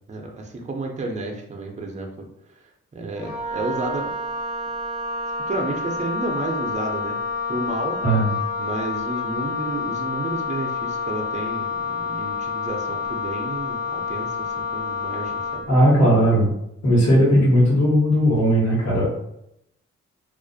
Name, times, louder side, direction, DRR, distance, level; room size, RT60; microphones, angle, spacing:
voice 1, 0.1-2.1 2.9-4.1 5.5-7.2 7.5-8.0 8.6-15.6, right 2 dB, 25° right, 2 dB, 0.5 m, -31 dB
Wind instrument woodwind instrument, 3.2-15.7, left 4 dB, 90° left, 0.9 m, -28 dB
voice 2, 8.0-8.3 15.7-16.5 16.8-19.1, equal, 60° left, -6 dB, 1.2 m, -17 dB
2.4 x 2.0 x 2.6 m, 0.78 s
cardioid pair, 55°, 30 cm